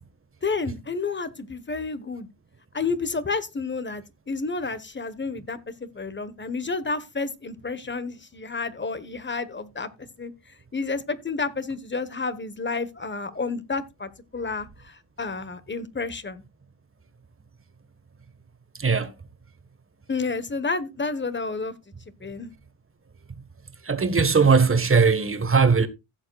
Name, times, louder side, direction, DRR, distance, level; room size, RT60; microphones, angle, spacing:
voice 1, 0.4-2.3 2.7-5.6 5.9-9.9 10.2-10.3 10.7-16.4 20.1-21.7 22.2-22.5, left 4 dB, 25° left, 1.2 m, -30 dB
voice 2, 18.8-19.1 23.9-25.9, right 5 dB, 30° right, 1.5 m, -19 dB
16.0 x 7.3 x 2.4 m
cardioid pair, 80°, 46 cm